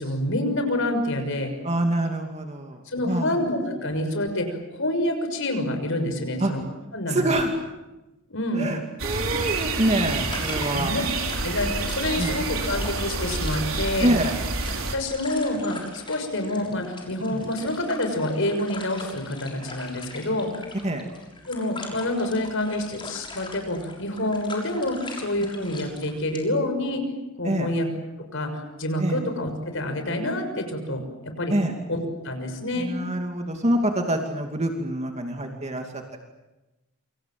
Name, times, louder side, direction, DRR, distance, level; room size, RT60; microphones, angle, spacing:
voice 1, 0.0-1.5 2.9-6.6 6.9-7.3 8.3-8.7 10.7-11.0 11.4-14.1 14.9-20.5 21.5-27.0 27.4-27.9 28.3-31.6 31.9-32.0 32.2-32.9, left 1 dB, 65° left, 6 dB, 6.4 m, -27 dB
voice 2, 1.6-3.3 6.4-6.5 7.1-7.5 8.6-10.9 12.2-12.3 14.0-14.3 17.3-17.4 20.8-21.1 27.4-27.7 29.0-29.2 31.5-31.7 32.7-36.0, right 1 dB, 30° right, 3 dB, 2.7 m, -26 dB
sound 1, 9.0-15.0, right 3 dB, 70° right, 4.3 m, -28 dB
sound 2, 9.4-26.4, left 2 dB, 25° left, 6.5 m, -41 dB
28.5 x 26.5 x 7.8 m, 1.0 s
head